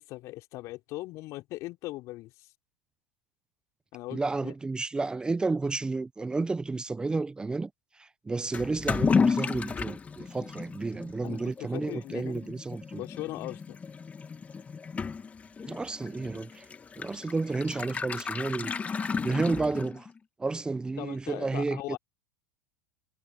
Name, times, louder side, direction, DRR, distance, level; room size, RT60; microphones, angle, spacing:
voice 1, 0.0-2.5 3.9-4.5 11.2-12.5 12.9-13.8 21.0-22.0, left 18 dB, 55° left, 4.8 m, -39 dB
voice 2, 4.1-7.7 8.0-13.0 15.7-16.7 17.0-20.1 20.4-22.0, right 3 dB, 15° right, 0.7 m, -31 dB
Toilet flush / Liquid, 8.5-20.2, left 5 dB, 20° left, 1.6 m, -33 dB
hypercardioid pair, 95°, 7 cm